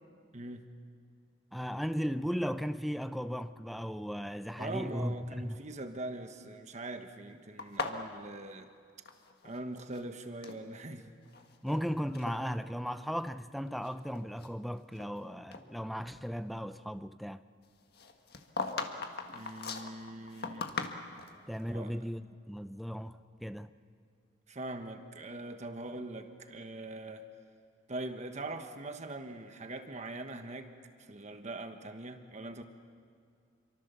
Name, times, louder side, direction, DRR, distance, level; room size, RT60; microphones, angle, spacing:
voice 1, 0.3-0.7 4.6-8.7 9.4-11.1 19.3-20.7 21.7-21.9 24.5-27.2 27.9-30.7 31.0-32.6, right 2 dB, 35° right, 1.3 m, -42 dB
voice 2, 1.5-5.6 11.6-17.4 21.5-23.7, equal, ahead, 0.5 m, -36 dB
sound 1, 7.6-9.6 9.8-10.6 11.2-11.8 12.1-12.4 13.0-13.1 13.7-15.2 15.5-15.6 17.9-21.4, left 4 dB, 55° left, 1.6 m, -39 dB
27.5 x 24.0 x 6.9 m
head